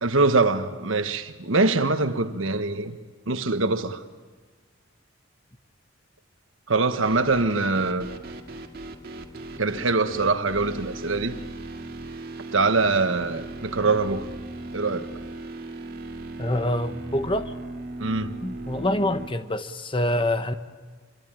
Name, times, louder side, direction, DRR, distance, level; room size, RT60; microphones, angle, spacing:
voice 1, 0.0-3.0 3.3-4.0 6.7-8.1 9.6-11.4 12.5-14.2 14.7-15.1 18.0-18.3, right 3 dB, 90° right, 1.3 m, -23 dB
sound 1, 7.0-19.3, right 2 dB, 50° right, 2.2 m, -38 dB
voice 2, 16.4-17.5 18.4-20.5, left 1 dB, 25° left, 1.1 m, -26 dB
26.5 x 24.0 x 9.0 m
head